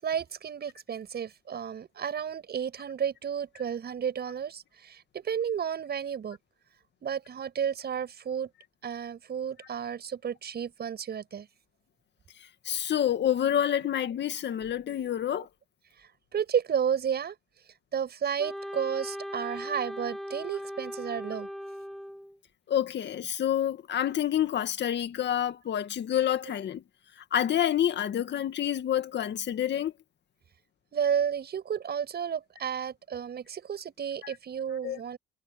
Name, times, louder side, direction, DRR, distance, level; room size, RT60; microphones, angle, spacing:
voice 1, 0.0-6.4 7.0-8.5 8.8-11.5 16.0-17.4 17.9-21.5 30.9-35.2, right 8 dB, 55° right, 7.1 m, -32 dB
voice 2, 12.7-15.5 22.7-26.8 27.3-29.9 34.8-35.0, left 10 dB, 60° left, 2.1 m, -28 dB
Wind instrument woodwind instrument, 18.4-22.4, equal, ahead, 4.4 m, -38 dB
cardioid pair, 90°, 20 cm